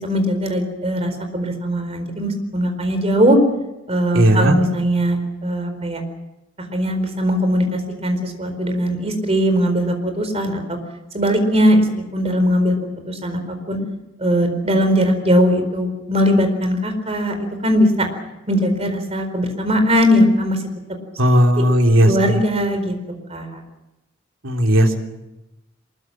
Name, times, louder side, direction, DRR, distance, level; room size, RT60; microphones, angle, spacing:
voice 1, 0.0-3.4 3.9-6.0 6.7-10.8 11.1-11.8 12.1-12.7 13.1-13.8 14.2-18.1 18.5-20.6 22.0-22.9 23.3-23.6, equal, 30° right, 7 dB, 4.4 m, -19 dB
voice 2, 4.1-4.6 21.2-22.4 24.4-25.0, equal, 90° right, 2 dB, 3.5 m, -15 dB
23.5 x 21.5 x 7.5 m, 0.96 s
head